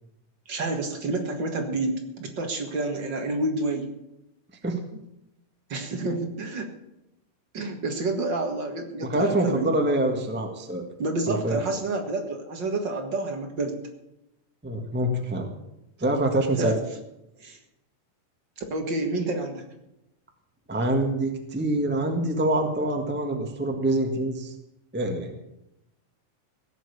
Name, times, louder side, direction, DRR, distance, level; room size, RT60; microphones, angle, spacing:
voice 1, 0.5-3.9 5.7-6.7 7.5-9.8 11.0-13.8 16.6-16.8 17.4-17.6 18.7-19.7, right 2 dB, 45° right, 4 dB, 2.0 m, -29 dB
voice 2, 9.0-10.8 11.3-11.6 14.6-15.5 16.0-16.7 20.7-24.5 24.9-25.3, right 1 dB, 15° right, 4 dB, 0.4 m, -25 dB
16.5 x 7.6 x 8.5 m, 0.88 s
omnidirectional pair, 3.5 m